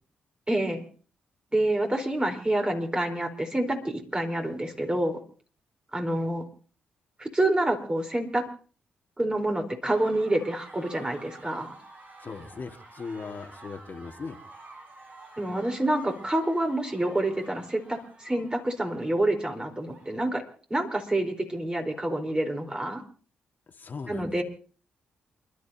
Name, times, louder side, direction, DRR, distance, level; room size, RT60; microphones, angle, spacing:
voice 1, 0.5-0.8 1.5-5.2 5.9-6.4 7.2-8.5 9.2-11.8 15.4-20.4 20.7-23.0 24.1-24.4, right 1 dB, 20° right, 3 dB, 4.3 m, -27 dB
sound 1, 9.8-20.5, right 2 dB, 45° right, 5.6 m, -50 dB
voice 2, 12.2-14.4 23.7-24.4, left 4 dB, 50° left, 4 dB, 1.9 m, -39 dB
28.5 x 12.0 x 2.9 m, 0.40 s
hypercardioid pair, 40°, 4 cm